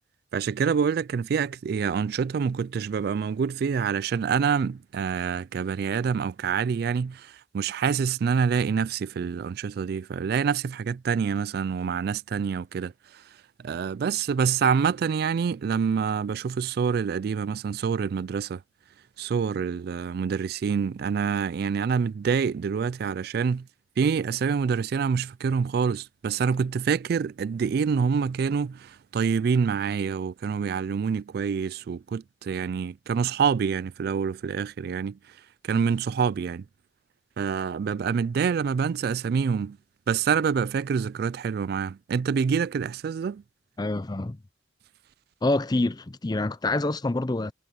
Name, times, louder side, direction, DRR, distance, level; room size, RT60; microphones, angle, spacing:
voice 1, 0.3-13.2 13.6-18.6 19.2-23.7 24.0-35.2 35.6-36.7 37.4-39.8 40.1-43.4, right 6 dB, 55° right, 0.3 m, -26 dB
voice 2, 43.8-44.4 45.4-47.5, left 2 dB, 20° left, 0.5 m, -26 dB
head